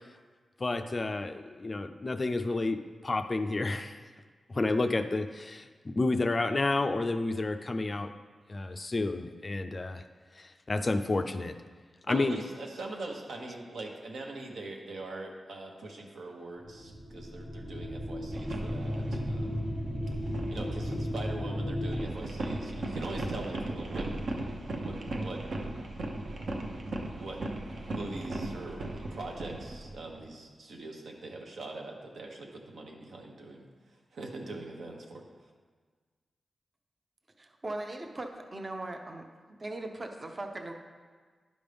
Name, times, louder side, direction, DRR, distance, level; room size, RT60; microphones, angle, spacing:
voice 1, 0.6-4.0 4.5-8.1 8.5-10.0 10.4-11.6 12.1-12.4, left 2 dB, 30° left, 8 dB, 0.3 m, -30 dB
voice 2, 12.1-19.6 20.5-24.1 24.8-25.4 26.9-27.4 27.7-35.2, right 2 dB, 80° right, 1 dB, 1.1 m, -42 dB
sound 1, 16.6-22.0, equal, 5° right, 0.9 m, -34 dB
sound 2, 18.3-21.4 21.8-30.3, right 2 dB, 65° right, 0.8 m, -37 dB
voice 3, 37.4-39.2 39.6-40.7, right 2 dB, 30° right, 4 dB, 0.6 m, -39 dB
11.0 x 5.2 x 3.4 m, 1.5 s
wide cardioid pair, 150°, 0 cm